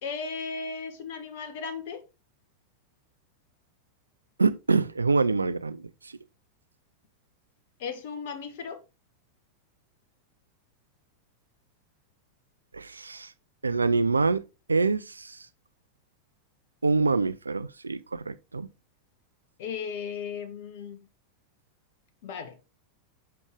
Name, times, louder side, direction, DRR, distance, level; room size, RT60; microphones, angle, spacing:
voice 1, 0.0-2.0 7.8-8.8 19.6-21.0 22.2-22.6, left 5 dB, 50° left, 1.3 m, -36 dB
voice 2, 4.4-6.1 12.7-13.3 13.6-14.4 14.7-15.5 16.8-18.7, right 4 dB, 80° right, 0.3 m, -26 dB
6.6 x 5.1 x 4.8 m
figure-of-eight pair, 90°, 0 cm